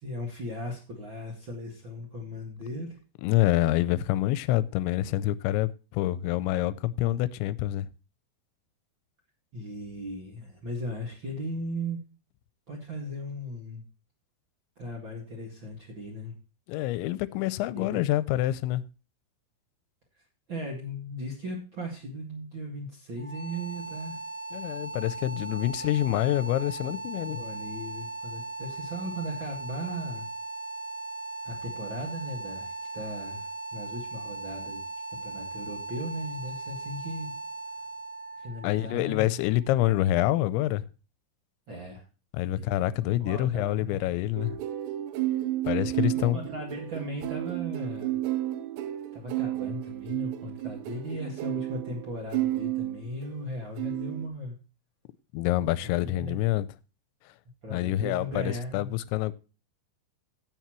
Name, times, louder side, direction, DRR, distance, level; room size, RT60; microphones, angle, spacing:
voice 1, 0.0-3.0 9.5-12.0 12.7-13.8 14.8-16.3 17.8-18.0 20.5-24.2 27.4-30.3 31.4-34.8 35.1-37.3 38.4-39.3 41.7-42.0 42.5-44.1 46.3-48.2 49.1-54.5 55.8-56.4 57.6-58.9, equal, 40° right, 1.8 m, -37 dB
voice 2, 3.2-7.9 16.7-18.8 24.5-27.4 38.6-40.8 42.3-44.6 45.7-46.4 55.3-56.7 57.7-59.3, left 15 dB, 90° left, 2.9 m, -27 dB
sound 1, 23.2-40.1, right 3 dB, 65° left, 1.0 m, -38 dB
sound 2, 44.4-53.4 53.8-54.3, right 15 dB, 80° right, 2.9 m, -32 dB
16.0 x 7.1 x 3.1 m
omnidirectional pair, 5.2 m